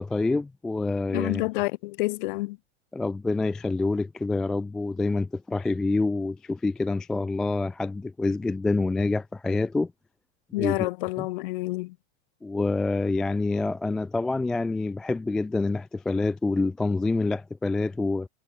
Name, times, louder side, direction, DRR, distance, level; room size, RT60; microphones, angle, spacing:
voice 1, 0.0-1.4 2.9-9.9 10.6-10.9 11.2-11.3 12.4-18.3, left 3 dB, ahead, 0.3 m, -27 dB
voice 2, 1.1-2.6 10.5-12.0, left 22 dB, 45° left, 7.3 m, -28 dB
supercardioid pair, 180°, 36 cm